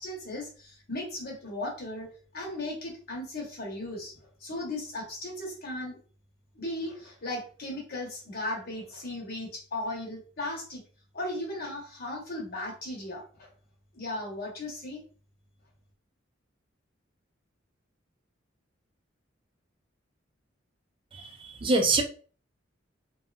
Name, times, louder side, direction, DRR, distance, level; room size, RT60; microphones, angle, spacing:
voice 1, 0.0-2.1 2.3-6.0 6.5-10.8 11.1-13.5 13.9-15.0, left 1 dB, 50° left, -1 dB, 1.0 m, -36 dB
voice 2, 21.1-22.0, right 3 dB, 25° right, 5 dB, 0.4 m, -25 dB
2.7 x 2.3 x 2.4 m, 0.39 s
head